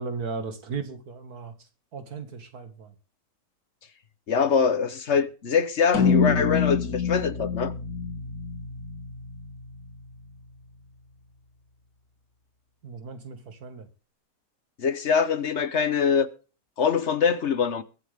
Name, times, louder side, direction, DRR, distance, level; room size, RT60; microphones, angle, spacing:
voice 1, 0.0-1.5 1.9-2.9 12.8-13.9, right 5 dB, 90° right, 2.5 m, -36 dB
voice 2, 4.3-7.7 14.8-16.3 16.8-17.8, left 6 dB, 50° left, 1.2 m, -23 dB
sound 1, 5.9-10.4, left 5 dB, 80° left, 2.3 m, -27 dB
22.5 x 7.7 x 3.6 m
omnidirectional pair, 1.6 m